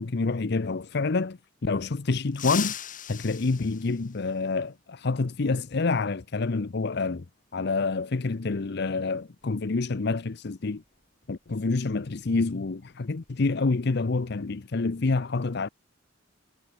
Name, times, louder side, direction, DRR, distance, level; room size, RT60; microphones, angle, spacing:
voice 1, 0.0-2.7 3.1-7.2 7.5-10.8 11.3-15.7, left 3 dB, 60° left, 0.7 m, -27 dB
sound 1, 2.3-4.7 6.3-6.4 7.7-7.8 9.4-9.6 9.9-10.1 10.6-12.8 13.1-13.3 13.7-14.2, left 10 dB, 45° left, 4.9 m, -39 dB
head